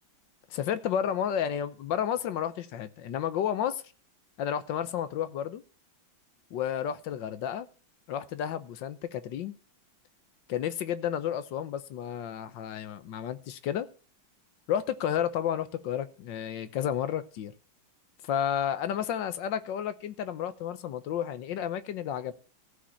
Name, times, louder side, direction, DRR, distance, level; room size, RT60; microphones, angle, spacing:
voice 1, 0.5-3.8 4.4-5.6 6.5-7.7 8.1-9.5 10.5-13.9 14.7-17.5 18.3-22.3, left 9 dB, 70° left, 1.4 m, -31 dB
14.5 x 5.1 x 7.0 m
omnidirectional pair, 2.2 m